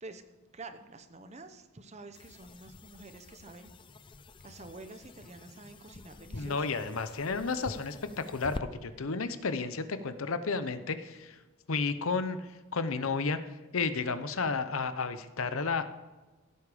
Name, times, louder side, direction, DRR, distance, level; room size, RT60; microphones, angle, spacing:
voice 1, 0.5-3.7 4.4-6.7, right 3 dB, 30° right, 8 dB, 0.9 m, -48 dB
sound 1, 2.1-8.7, left 2 dB, 20° left, 0.4 m, -47 dB
voice 2, 6.3-8.6 8.8-11.4 11.7-13.4 13.7-15.9, left 4 dB, 70° left, 12 dB, 0.8 m, -32 dB
16.0 x 8.5 x 5.0 m, 1.2 s
head